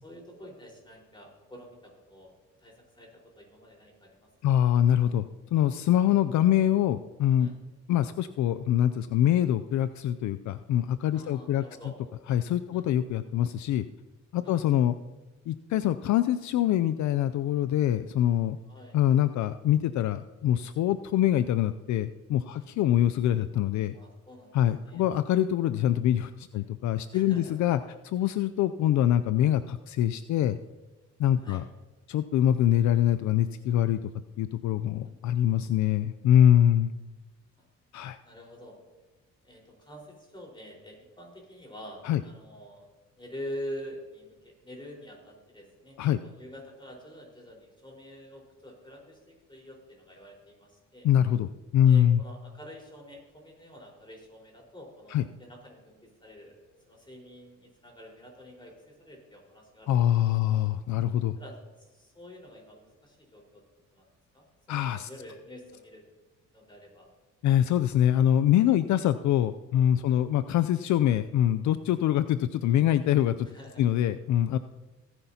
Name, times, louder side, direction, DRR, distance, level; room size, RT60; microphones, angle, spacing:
voice 1, 0.0-4.6 7.4-7.6 11.1-11.9 12.7-12.8 14.4-14.5 18.7-19.0 22.5-22.7 23.9-25.0 26.5-26.7 27.1-27.5 31.4-31.6 37.6-37.7 38.2-38.8 39.4-42.9 43.2-51.1 51.9-56.6 56.9-60.0 60.4-60.5 61.4-63.6 63.9-64.1 64.3-66.0 66.5-67.1 70.0-70.2 73.4-73.8, equal, 15° left, 0 dB, 4.4 m, -46 dB
voice 2, 4.4-7.5 7.9-11.6 12.3-13.9 14.3-14.9 15.5-18.6 18.9-23.9 24.5-27.8 28.0-30.6 31.2-31.6 32.1-34.0 34.4-36.9 37.9-38.2 42.0-42.2 46.0-46.2 51.0-52.2 55.1-55.2 59.9-61.4 64.7-65.1 67.4-73.5 73.8-74.6, left 11 dB, 70° left, 12 dB, 0.5 m, -24 dB
18.0 x 10.0 x 2.8 m, 1.2 s
cardioid pair, 90°, 30 cm